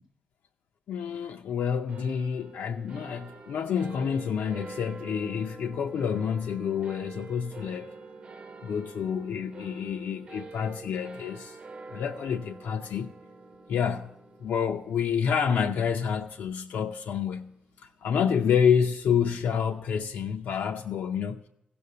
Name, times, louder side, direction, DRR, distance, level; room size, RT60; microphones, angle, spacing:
voice 1, 0.9-7.9 8.6-11.6 11.9-13.1 13.7-14.1 14.4-17.5 18.0-21.5, left 7 dB, 90° left, 0.6 m, -28 dB
sound 1, 1.9-18.6, right 3 dB, 35° right, 1.5 m, -47 dB
16.0 x 7.0 x 6.6 m
wide cardioid pair, 145°, 3 cm